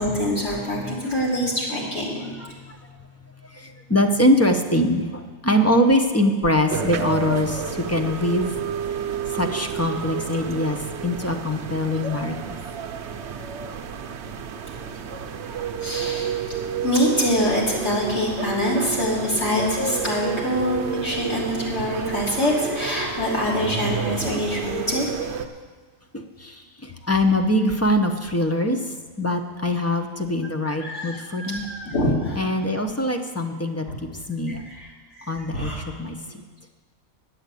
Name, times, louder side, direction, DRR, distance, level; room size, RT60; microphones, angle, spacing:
voice 1, 0.0-2.3 15.8-16.3 16.8-25.1 30.6-32.5 34.5-34.9 35.2-35.8, left 1 dB, 50° left, -5 dB, 3.4 m, -25 dB
voice 2, 2.4-2.8 3.5-8.5 9.3-10.8 11.0-12.6 15.2-15.3 26.1-28.8 29.2-31.6 32.4-33.9 34.1-34.6 35.3-36.4, left 1 dB, 20° left, 5 dB, 0.5 m, -23 dB
sound 1, 6.7-25.5, right 7 dB, 60° right, 0.9 m, -30 dB
10.5 x 7.9 x 8.3 m, 1.4 s
omnidirectional pair, 1.4 m